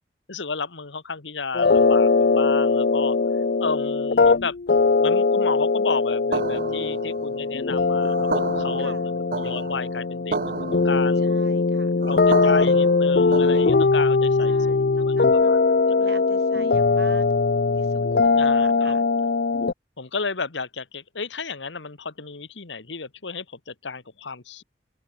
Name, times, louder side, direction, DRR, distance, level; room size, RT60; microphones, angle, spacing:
voice 1, 0.3-3.2 3.6-4.5 5.0-10.4 10.7-11.3 12.1-15.2 15.5-15.6 18.4-19.0 20.0-24.6, left 4 dB, 90° left, 1.5 m, -32 dB
sound 1, 1.5-19.7, left 4 dB, 55° left, 0.5 m, -20 dB
sound 2, 6.3-14.1, right 3 dB, 50° right, 0.7 m, -32 dB
voice 2, 11.2-11.9 14.4-15.6 15.9-17.3 17.7-19.0, right 3 dB, 65° right, 6.9 m, -45 dB
open air
head